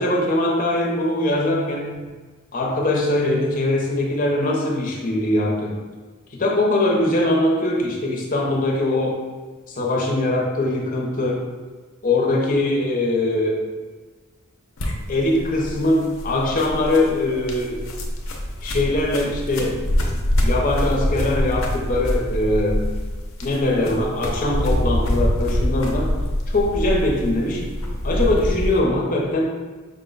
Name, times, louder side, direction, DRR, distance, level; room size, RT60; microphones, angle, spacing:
voice 1, 0.0-1.9 2.5-5.8 6.3-9.2 9.7-11.4 12.0-13.6 15.1-17.8 18.6-19.8 20.4-22.9 23.4-26.1 26.5-27.6 28.0-29.5, left 1 dB, 45° left, -1 dB, 0.8 m, -21 dB
sound 1, 14.8-28.8, equal, 90° left, 0.7 m, -25 dB
5.3 x 2.2 x 3.9 m, 1.3 s
head